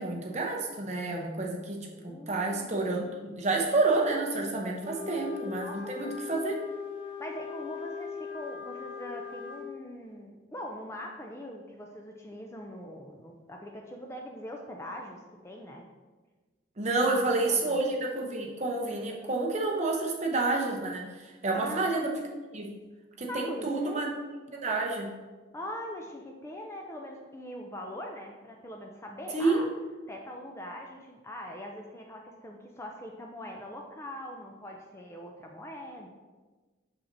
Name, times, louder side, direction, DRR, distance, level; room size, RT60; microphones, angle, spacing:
voice 1, 0.0-6.6 16.8-22.1 22.5-22.7 23.2-24.1 24.5-25.1 29.3-29.6, right 3 dB, 35° right, 0 dB, 0.8 m, -29 dB
voice 2, 1.6-2.9 5.0-5.3 5.6-15.8 17.0-17.8 21.5-21.9 23.3-24.1 25.5-29.7 30.1-36.1, equal, 15° left, 1 dB, 0.4 m, -42 dB
Wind instrument woodwind instrument, 4.8-9.6, left 7 dB, 70° left, 1.5 m, -40 dB
6.4 x 5.7 x 2.7 m, 1.3 s
head